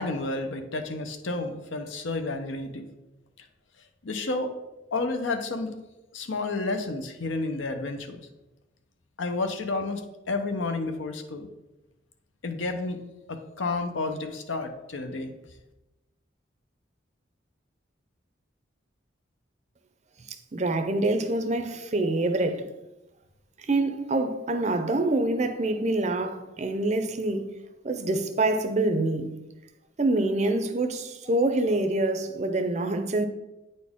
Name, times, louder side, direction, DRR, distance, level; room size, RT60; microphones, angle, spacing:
voice 1, 0.0-2.9 3.4-3.5 4.0-4.5 4.9-5.7 6.1-8.2 9.2-11.5 12.4-13.0 13.3-15.3 21.8-22.1, left 3 dB, 75° left, 0.7 m, -31 dB
voice 2, 20.5-22.7 23.6-27.5 27.8-29.3 30.0-33.3, right 2 dB, 35° right, 0.5 m, -26 dB
8.8 x 4.2 x 3.6 m
head